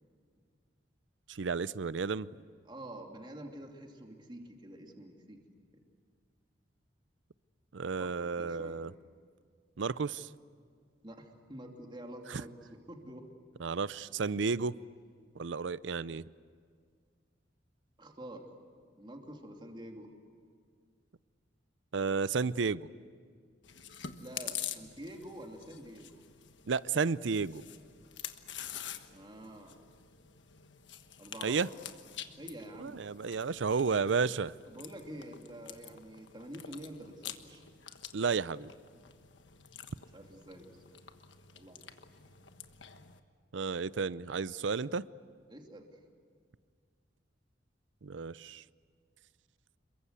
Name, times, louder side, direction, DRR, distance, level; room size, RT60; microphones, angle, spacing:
voice 1, 1.3-2.3 7.7-8.9 9.8-10.3 12.3-12.4 13.6-14.8 15.4-16.3 21.9-22.9 26.7-27.6 31.4-31.7 32.8-34.5 38.1-38.7 43.5-45.1 48.0-48.6, right 5 dB, 90° right, 0.6 m, -32 dB
voice 2, 2.6-5.4 8.0-8.8 11.0-13.3 18.0-18.5 18.9-20.1 24.2-26.2 29.1-29.8 31.2-31.7 32.4-33.0 34.6-37.6 40.1-41.0 41.5-41.9 45.5-45.9, right 1 dB, 25° right, 2.9 m, -47 dB
Chewing mastication, 23.6-43.2, left 9 dB, 80° left, 1.4 m, -47 dB
28.0 x 23.0 x 8.2 m
head